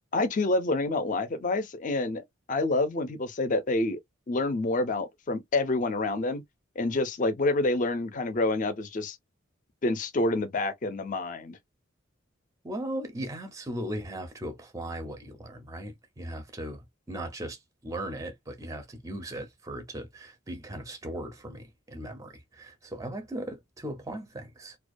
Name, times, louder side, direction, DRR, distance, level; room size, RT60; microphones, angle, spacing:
voice 1, 0.1-4.0 4.3-6.4 6.8-9.2 9.8-11.6, left 2 dB, 40° left, 0.4 m, -28 dB
voice 2, 12.6-24.8, right 1 dB, 15° right, 0.4 m, -38 dB
2.3 x 2.2 x 2.5 m
head